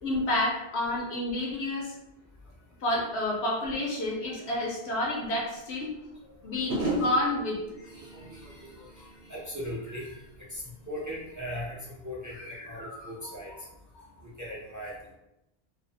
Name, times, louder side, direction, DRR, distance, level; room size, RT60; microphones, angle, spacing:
voice 1, 0.0-1.9 2.8-5.9 6.2-7.6 12.4-13.1 14.0-14.1, left 1 dB, 85° left, -3 dB, 0.9 m, -30 dB
sound 1, 5.3-5.4 6.7-9.8 10.1-10.6, right 1 dB, 80° right, 0.8 m, -35 dB
voice 2, 7.9-9.0 9.3-10.1 10.5-10.6 10.9-11.7 12.0-13.5 14.4-14.9, equal, 30° right, -6 dB, 0.4 m, -38 dB
2.6 x 2.0 x 2.6 m, 0.91 s
omnidirectional pair, 1.1 m